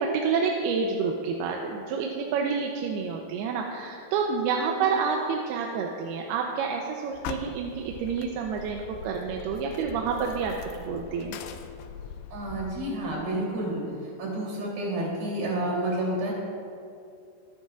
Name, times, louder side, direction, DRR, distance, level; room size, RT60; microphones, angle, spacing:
voice 1, 0.0-10.5 10.8-11.4, right 5 dB, 90° right, 1 dB, 2.7 m, -28 dB
sound 1, 7.1-12.9, left 7 dB, 80° left, 2.2 m, -41 dB
voice 2, 12.3-16.3, right 1 dB, 70° right, -5 dB, 5.0 m, -30 dB
23.5 x 9.6 x 2.4 m, 2.5 s
omnidirectional pair, 4.4 m